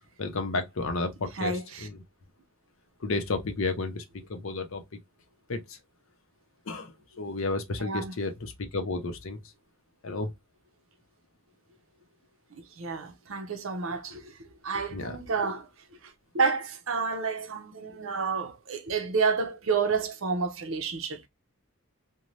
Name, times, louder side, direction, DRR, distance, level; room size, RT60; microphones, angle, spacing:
voice 1, 0.2-2.0 3.0-4.0 4.3-4.8 5.5-5.8 6.7-9.4 10.0-10.3 14.9-15.2, left 3 dB, 70° left, 0.6 m, -32 dB
voice 2, 1.3-1.9 7.8-8.1 12.6-14.4 14.6-15.7 16.0-21.3, right 5 dB, 65° right, 0.6 m, -30 dB
2.6 x 2.2 x 3.1 m
head